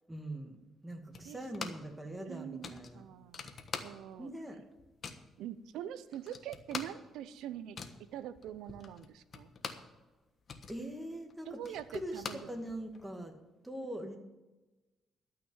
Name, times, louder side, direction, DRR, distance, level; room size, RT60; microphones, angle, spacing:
voice 1, 0.1-3.1 4.2-4.6 10.7-13.3 13.6-14.2, right 1 dB, 10° right, 4 dB, 2.1 m, -42 dB
sound 1, 1.1-2.0 2.2-2.3 2.6-4.3 4.6-5.3 5.8-5.9 6.1-10.0 10.3-13.0, left 5 dB, 50° left, 1.3 m, -45 dB
voice 2, 2.2-3.5 3.8-4.3 5.4-7.8 8.1-9.5 11.5-12.7, right 11 dB, 90° right, 14 dB, 0.7 m, -44 dB
12.5 x 5.9 x 8.8 m, 1.1 s
cardioid pair, 90°, 0 cm